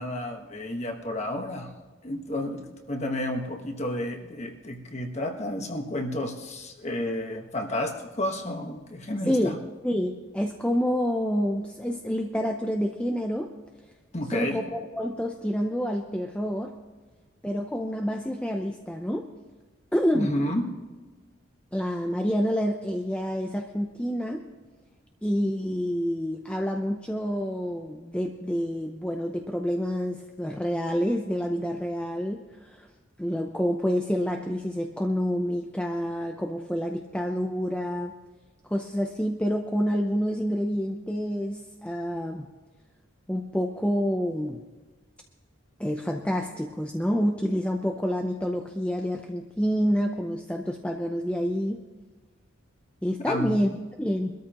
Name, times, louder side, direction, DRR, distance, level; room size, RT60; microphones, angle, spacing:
voice 1, 0.0-1.7 2.0-2.6 2.9-9.6 14.1-14.6 20.1-20.6 53.3-53.5, left 1 dB, 30° left, 3 dB, 1.3 m, -31 dB
voice 2, 9.3-9.6 9.8-13.5 14.3-16.7 17.4-19.3 19.9-20.3 21.7-24.4 25.2-32.9 33.2-38.1 38.7-42.5 43.3-44.6 45.8-51.8 53.0-53.7 54.0-54.3, equal, 5° left, 2 dB, 0.6 m, -28 dB
23.0 x 13.0 x 3.0 m, 1.3 s
head